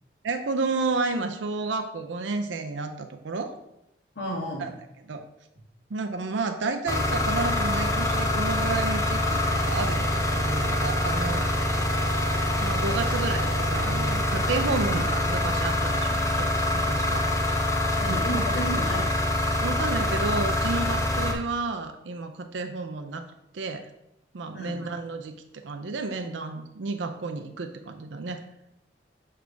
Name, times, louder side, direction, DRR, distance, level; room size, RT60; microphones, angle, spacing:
voice 1, 0.2-3.5 4.6-4.7 5.0-5.2 5.9-11.5 12.6-17.3 19.6-23.3 23.5-23.9 24.3-28.4, right 3 dB, 85° right, 6 dB, 0.5 m, -31 dB
voice 2, 4.2-4.6 14.9-15.0 18.0-19.1 24.5-24.8, right 1 dB, 75° left, -1 dB, 1.9 m, -32 dB
sound 1, 6.9-21.3, left 1 dB, 15° left, 0.7 m, -25 dB
6.6 x 3.4 x 5.1 m, 0.85 s
head